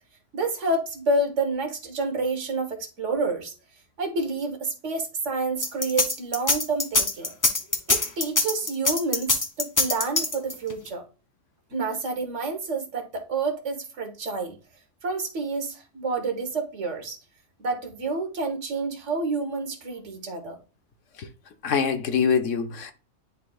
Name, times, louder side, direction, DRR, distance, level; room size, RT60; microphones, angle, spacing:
voice 1, 0.3-3.5 4.0-7.3 7.9-11.0 11.7-14.5 15.0-17.2 17.6-20.6, right 3 dB, 70° right, 1.6 m, -29 dB
sound 1, 5.6-10.7, left 3 dB, 25° left, 0.5 m, -23 dB
voice 2, 21.6-22.9, left 6 dB, 80° left, 1.2 m, -24 dB
10.5 x 4.0 x 2.3 m
omnidirectional pair, 1.3 m